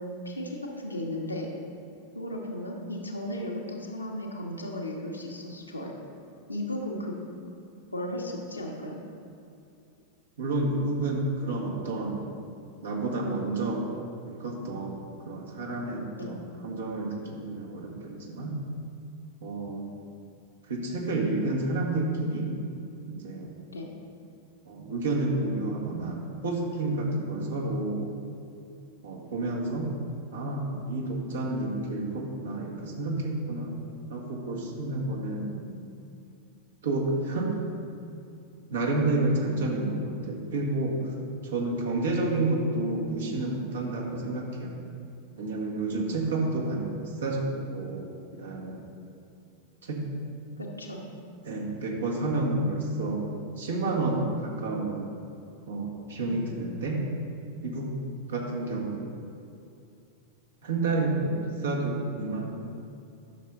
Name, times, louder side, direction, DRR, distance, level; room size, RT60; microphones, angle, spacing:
voice 1, 0.0-1.5 2.1-5.9 6.5-7.2 7.9-9.0 16.1-16.4 23.7-23.9 35.3-35.8 45.8-46.3 50.6-51.1 56.2-56.5, left 1 dB, 85° left, -1 dB, 1.2 m, -36 dB
voice 2, 10.4-12.2 12.8-13.9 14.3-18.6 19.4-19.9 20.7-22.6 23.1-23.5 24.7-28.0 29.0-29.9 30.3-33.7 34.1-35.5 36.8-37.6 38.7-41.0 41.4-44.7 45.4-48.8 49.8-50.0 51.4-53.2 53.6-55.1 55.7-57.0 57.6-57.9 58.3-59.0 60.6-62.5, right 2 dB, 65° right, -1 dB, 1.7 m, -30 dB
11.5 x 6.6 x 3.8 m, 2.6 s
figure-of-eight pair, 90°, 0 cm